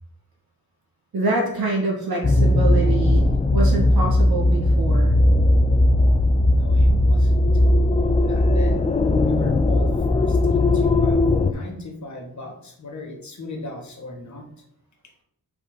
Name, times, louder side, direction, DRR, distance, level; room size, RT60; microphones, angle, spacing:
voice 1, 1.1-5.2, right 2 dB, 90° right, -1 dB, 2.2 m, -26 dB
sound 1, 2.2-11.5, left 1 dB, 20° left, 0.3 m, -18 dB
voice 2, 6.6-7.6 8.2-8.8 9.2-14.5, left 2 dB, 50° left, 2 dB, 1.4 m, -37 dB
5.2 x 4.1 x 5.3 m, 0.73 s
wide cardioid pair, 160°, 36 cm